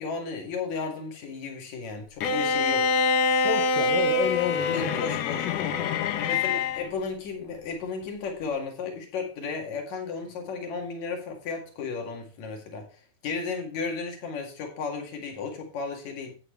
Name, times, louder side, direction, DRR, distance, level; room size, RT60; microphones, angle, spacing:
voice 1, 0.0-2.9 4.7-5.6 6.2-12.9 13.2-16.3, left 5 dB, 55° left, 3 dB, 3.2 m, -34 dB
Bowed string instrument, 2.2-6.9, left 4 dB, 90° left, 1.5 m, -25 dB
voice 2, 3.4-6.5, left 9 dB, 70° left, 2 dB, 2.6 m, -32 dB
11.0 x 8.7 x 3.3 m, 0.35 s
omnidirectional pair, 4.3 m